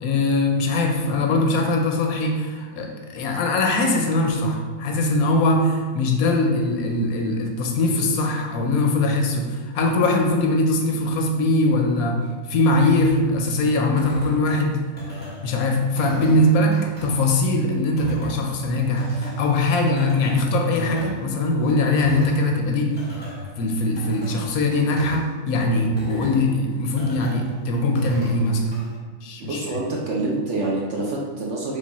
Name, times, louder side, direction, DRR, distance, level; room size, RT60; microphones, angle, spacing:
voice 1, 0.0-14.8 15.4-23.1 23.6-28.8 29.2-29.8, left 2 dB, 70° left, 2 dB, 1.0 m, -21 dB
sound 1, 13.0-29.0, left 1 dB, 10° left, 0.8 m, -39 dB
voice 2, 29.4-31.8, right 2 dB, 65° right, -2 dB, 0.8 m, -26 dB
3.4 x 3.3 x 4.0 m, 1.4 s
omnidirectional pair, 1.7 m